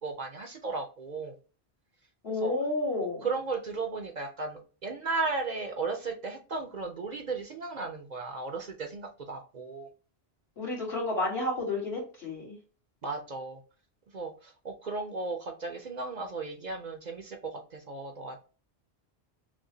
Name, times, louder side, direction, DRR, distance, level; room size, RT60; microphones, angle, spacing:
voice 1, 0.0-1.3 2.3-2.5 3.0-9.9 13.0-13.6 14.1-18.4, right 3 dB, 50° right, 5 dB, 0.7 m, -35 dB
voice 2, 2.2-3.3 10.6-12.5, left 2 dB, 75° left, -4 dB, 2.2 m, -31 dB
6.0 x 2.2 x 2.7 m, 0.37 s
omnidirectional pair, 1.1 m